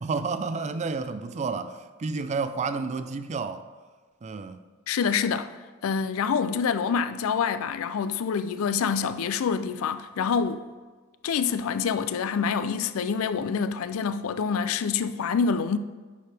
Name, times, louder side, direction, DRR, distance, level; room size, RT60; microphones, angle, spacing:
voice 1, 0.0-3.7 4.2-4.6, right 4 dB, 35° right, 0.4 m, -30 dB
voice 2, 4.9-5.5 5.8-10.7 11.2-15.8, left 6 dB, 85° left, 0.4 m, -26 dB
10.0 x 4.8 x 3.3 m
head